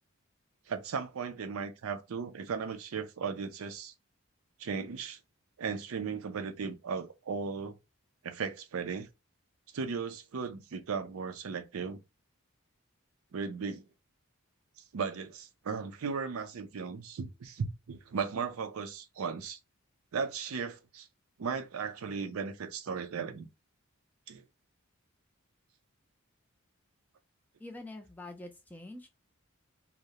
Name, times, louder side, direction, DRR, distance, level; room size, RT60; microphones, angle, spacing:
voice 1, 0.7-3.9 4.6-5.2 5.6-7.8 8.2-9.1 9.7-12.0 13.3-13.8 14.9-19.6 20.1-21.1 21.4-23.5 24.3-24.4, right 5 dB, 75° right, 0.4 m, -36 dB
voice 2, 27.6-29.1, left 2 dB, 10° left, 0.3 m, -45 dB
2.3 x 2.0 x 2.8 m
head